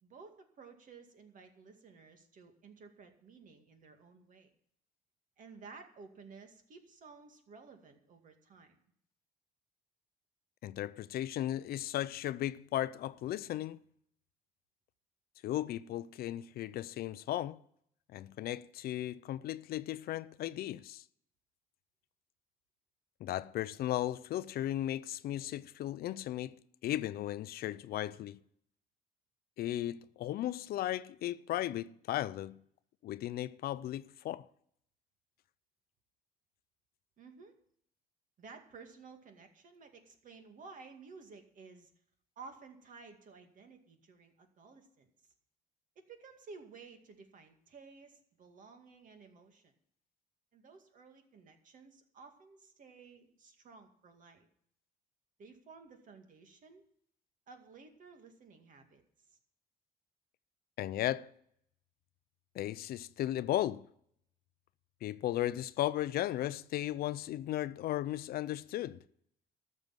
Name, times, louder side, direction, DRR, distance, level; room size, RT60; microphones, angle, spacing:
voice 1, 0.0-4.5 5.4-8.8 37.2-37.6 38.4-41.9 42.4-45.1 46.0-49.7 50.5-54.5 55.4-56.9 57.5-59.4, right 4 dB, 50° right, 2.2 m, -54 dB
voice 2, 10.6-13.8 15.4-17.6 18.1-21.0 23.2-26.6 26.8-28.4 29.6-32.6 33.0-34.5 60.8-61.3 62.5-63.9 65.0-69.0, left 13 dB, 65° left, 0.5 m, -36 dB
13.5 x 6.5 x 9.2 m
cardioid pair, 110°, 17 cm